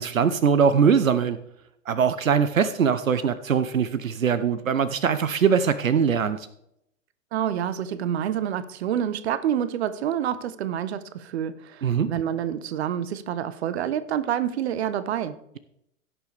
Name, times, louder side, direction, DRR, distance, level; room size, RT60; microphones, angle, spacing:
voice 1, 0.0-1.4 1.9-6.5 11.8-12.1, right 7 dB, 80° right, 0.8 m, -22 dB
voice 2, 7.3-15.4, right 10 dB, 55° right, 0.9 m, -28 dB
16.5 x 6.9 x 3.4 m
figure-of-eight pair, 110°, 39 cm